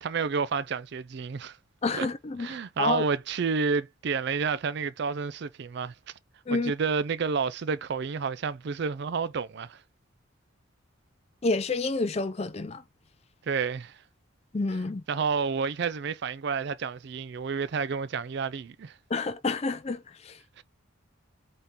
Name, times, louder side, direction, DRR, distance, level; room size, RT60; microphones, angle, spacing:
voice 1, 0.0-1.6 1.9-2.1 2.4-5.9 6.5-9.8 13.5-14.0 15.1-18.9 20.6-20.7, right 5 dB, 55° right, 0.4 m, -30 dB
voice 2, 1.8-2.5 2.8-3.1 6.5-6.7 11.4-12.8 14.5-15.0 19.1-20.4, left 3 dB, 30° left, 0.4 m, -29 dB
4.2 x 3.7 x 3.4 m
head